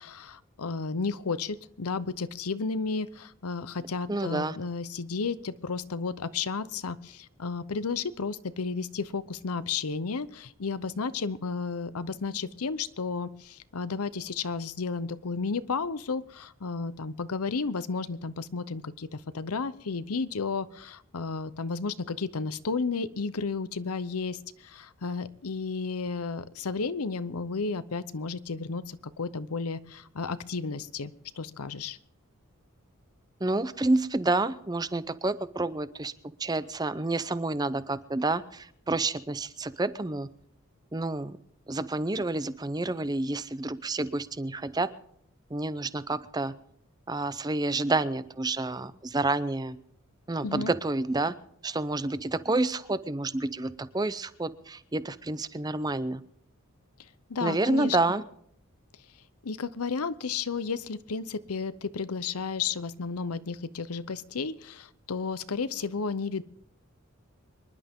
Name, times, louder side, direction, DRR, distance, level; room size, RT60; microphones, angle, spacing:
voice 1, 0.0-32.0 50.4-50.7 57.3-58.0 59.4-66.4, left 4 dB, 90° left, 15 dB, 0.8 m, -33 dB
voice 2, 4.1-4.6 33.4-36.1 36.4-40.3 40.9-41.4 41.7-44.9 45.5-46.5 47.1-49.8 50.3-51.3 51.6-56.2 57.4-58.2, right 2 dB, 20° right, 15 dB, 0.6 m, -29 dB
25.5 x 11.5 x 3.7 m, 0.68 s
head